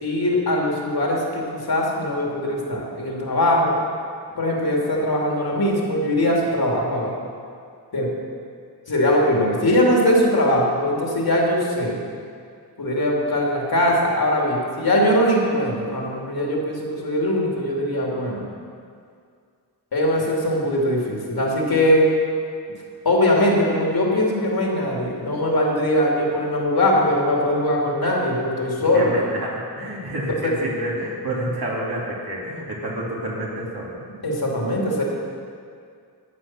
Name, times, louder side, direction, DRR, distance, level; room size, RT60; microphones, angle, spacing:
voice 1, 0.0-3.8 4.4-7.1 7.9-8.1 8.9-12.0 12.8-18.4 19.9-22.1 23.0-29.1 30.4-30.5 34.2-35.0, left 1 dB, 65° left, -2 dB, 2.8 m, -21 dB
voice 2, 28.9-34.0, right 1 dB, 65° right, -5 dB, 3.1 m, -29 dB
13.5 x 8.9 x 6.1 m, 2.2 s
wide cardioid pair, 90°, 40 cm